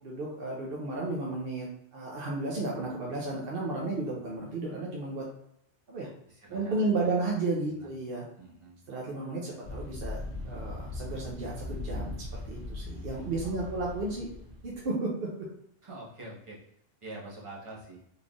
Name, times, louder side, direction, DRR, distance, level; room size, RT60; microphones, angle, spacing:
voice 1, 0.0-1.7 1.9-5.3 5.9-6.1 6.5-8.2 8.9-10.2 10.4-12.2 12.4-14.3 14.6-15.3, right 2 dB, 55° right, -3 dB, 0.8 m, -33 dB
voice 2, 6.3-7.2 7.7-7.9 8.4-8.8 13.4-13.9 15.8-16.7 17.0-18.0, right 2 dB, 25° right, -5 dB, 1.0 m, -46 dB
sound 1, 9.6-14.9, left 2 dB, 75° right, 1.5 m, -39 dB
4.0 x 3.3 x 2.3 m, 0.73 s
omnidirectional pair, 1.3 m